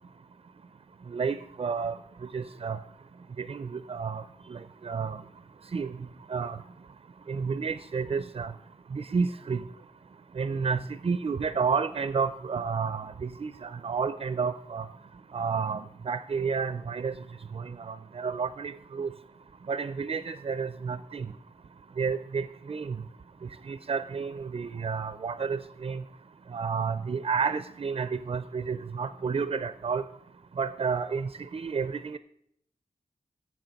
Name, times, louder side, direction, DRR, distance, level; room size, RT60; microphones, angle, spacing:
voice 1, 1.1-2.0 2.3-2.8 3.4-4.2 4.5-5.2 5.7-5.9 6.3-6.6 7.3-8.5 8.9-9.6 10.4-14.9 15.3-17.1 17.5-19.1 19.7-21.3 22.0-23.0 23.7-26.0 26.5-30.0 30.6-32.2, right 5 dB, 40° right, 14 dB, 0.4 m, -31 dB
14.5 x 7.5 x 5.2 m, 0.75 s
wide cardioid pair, 120°, 15 cm